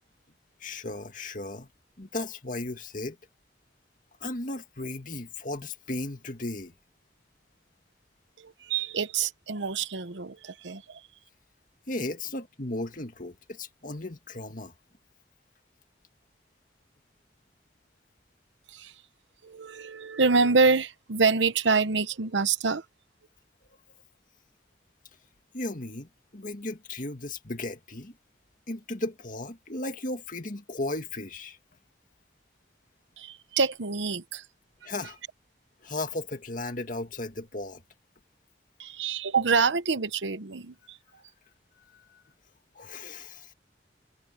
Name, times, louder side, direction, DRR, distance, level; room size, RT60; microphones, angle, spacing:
voice 1, 0.6-1.7 2.0-3.2 4.2-6.7 11.9-14.7 25.5-28.1 28.7-31.6 34.8-35.2 35.8-37.8 41.8-42.2 42.7-43.5, left 2 dB, 45° left, 2.2 m, -35 dB
voice 2, 8.4-11.0 18.7-18.9 19.4-22.8 33.2-34.4 38.8-41.0, right 4 dB, 85° right, 0.9 m, -26 dB
head